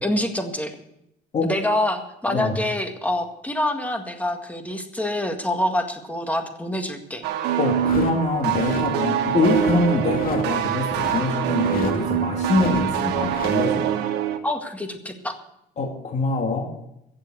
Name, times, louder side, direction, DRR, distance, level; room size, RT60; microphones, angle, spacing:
voice 1, 0.0-0.8 1.4-7.2 14.4-15.4, left 1 dB, 10° left, 6 dB, 1.8 m, -26 dB
sound 1, 7.2-14.4, right 10 dB, 85° right, 1.4 m, -24 dB
voice 2, 7.6-14.0 15.8-16.7, left 3 dB, 40° left, 1 dB, 2.4 m, -24 dB
sound 2, 7.9-8.9 9.2-9.8 10.0-11.3 11.6-12.0 12.4-13.5, left 4 dB, 60° left, 2.3 m, -32 dB
15.0 x 7.7 x 8.0 m, 0.80 s
cardioid pair, 110°, 17 cm